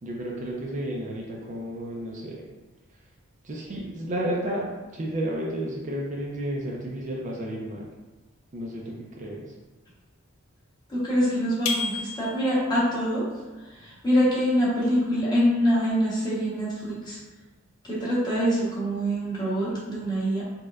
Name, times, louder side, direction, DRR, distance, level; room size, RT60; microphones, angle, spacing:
voice 1, 0.0-2.5 3.4-4.7 4.9-7.9 8.5-9.4, right 1 dB, 35° right, -2 dB, 0.4 m, -32 dB
voice 2, 10.9-13.2 13.7-17.2 17.8-20.4, equal, 20° left, -8 dB, 0.9 m, -25 dB
sound 1, 11.7-12.7, left 4 dB, 70° left, 0.4 m, -31 dB
4.2 x 2.2 x 2.3 m, 1.2 s
head